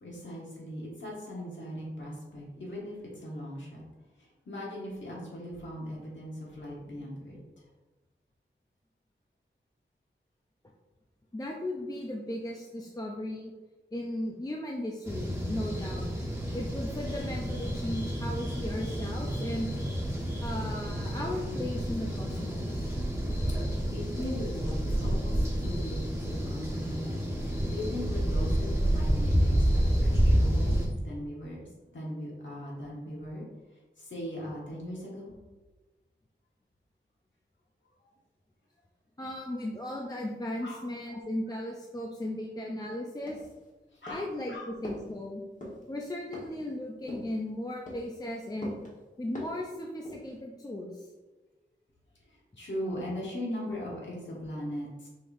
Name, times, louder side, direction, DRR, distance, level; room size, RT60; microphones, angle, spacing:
voice 1, 0.0-3.8 4.2-7.4 23.9-31.7 31.9-33.4 34.0-35.3 40.6-40.8 41.5-41.6 43.9-44.7 52.3-55.1, left 1 dB, 70° left, -4 dB, 1.3 m, -39 dB
voice 2, 11.3-13.5 13.9-16.1 16.5-19.7 20.4-22.9 39.2-43.4 44.1-45.4 45.9-48.7 49.2-51.1, left 1 dB, 20° left, -1 dB, 0.5 m, -36 dB
sound 1, 15.0-30.9, equal, 10° right, 1.2 m, -29 dB
sound 2, 43.3-43.7 44.1-44.4 44.8-45.1 45.6-45.8 46.3-46.6 47.1-47.4 47.9-48.1 48.6-48.9 49.3-49.7 50.0-50.4, left 1 dB, 40° left, 1.4 m, -42 dB
5.7 x 3.3 x 2.6 m, 1.2 s
wide cardioid pair, 75°, 20 cm